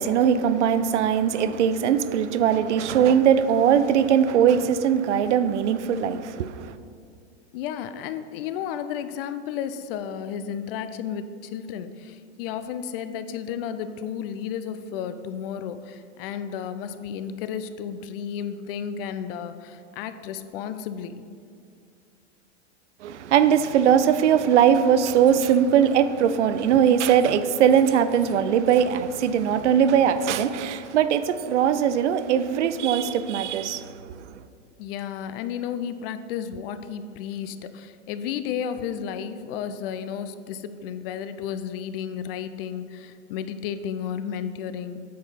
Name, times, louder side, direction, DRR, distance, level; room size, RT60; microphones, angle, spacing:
voice 1, 0.0-6.7 23.0-34.0, right 8 dB, 80° right, 0.6 m, -20 dB
voice 2, 7.5-21.2 34.8-45.0, left 8 dB, 55° left, 0.6 m, -33 dB
8.4 x 4.6 x 5.6 m
hypercardioid pair, 110°, 35 cm